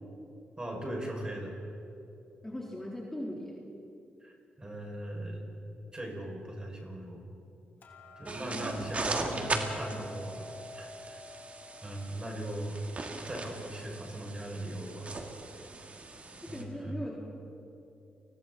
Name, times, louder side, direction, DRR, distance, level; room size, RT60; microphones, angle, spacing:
voice 1, 0.6-1.6 4.2-5.5 5.9-7.2 8.2-11.2 11.8-12.8 13.3-15.2 16.5-17.0, right 1 dB, 25° right, 0 dB, 6.5 m, -39 dB
voice 2, 2.4-3.6 8.5-8.9 16.5-17.4, left 1 dB, 10° left, -3 dB, 3.7 m, -40 dB
Hammer, 7.8-14.0, left 1 dB, 65° left, 3.2 m, -48 dB
sound 1, 8.3-16.6, right 3 dB, 40° right, 2.4 m, -39 dB
30.0 x 20.5 x 4.3 m, 2.7 s
cardioid pair, 65°, 4 cm